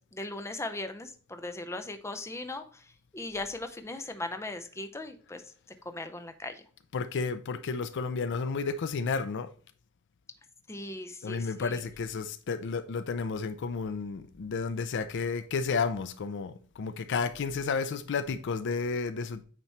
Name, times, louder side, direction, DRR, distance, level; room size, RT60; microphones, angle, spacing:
voice 1, 0.1-2.8 3.1-5.4 5.8-6.6 10.7-11.8, left 2 dB, 15° left, 0.6 m, -38 dB
voice 2, 6.9-9.5 11.2-19.4, left 4 dB, 55° left, 0.4 m, -32 dB
8.9 x 3.0 x 4.1 m
head